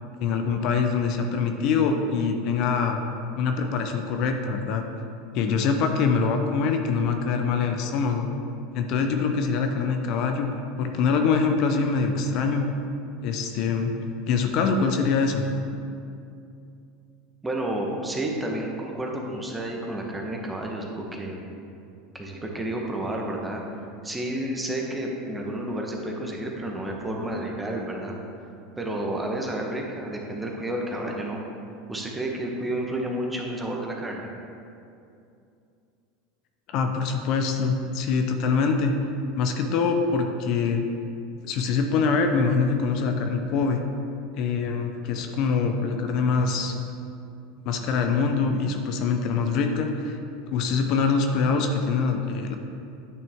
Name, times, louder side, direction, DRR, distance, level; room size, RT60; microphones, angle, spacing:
voice 1, 0.2-3.1 3.4-4.8 5.3-8.3 8.7-10.5 10.8-12.7 13.2-13.9 14.3-15.4 36.7-39.0 39.4-40.8 41.4-43.8 44.4-46.8 47.7-50.2 50.5-52.6, left 5 dB, 55° left, 5 dB, 0.7 m, -24 dB
voice 2, 17.4-21.4 22.1-23.6 24.0-28.2 28.8-31.4 31.9-34.3, right 1 dB, 10° right, 0 dB, 1.2 m, -30 dB
9.2 x 5.7 x 3.6 m, 2.6 s
supercardioid pair, 105°, 0 cm